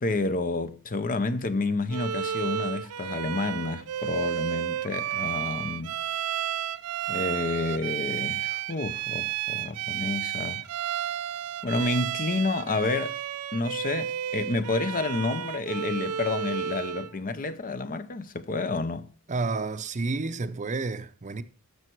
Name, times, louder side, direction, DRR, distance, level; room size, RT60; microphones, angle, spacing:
voice 1, 0.0-6.0 7.1-10.6 11.6-13.2 13.5-19.1, left 3 dB, 40° left, 0.7 m, -29 dB
Bowed string instrument, 1.9-17.1, right 10 dB, 85° right, 0.4 m, -32 dB
voice 2, 19.3-21.4, right 3 dB, 35° right, 0.6 m, -30 dB
12.5 x 6.8 x 4.5 m
head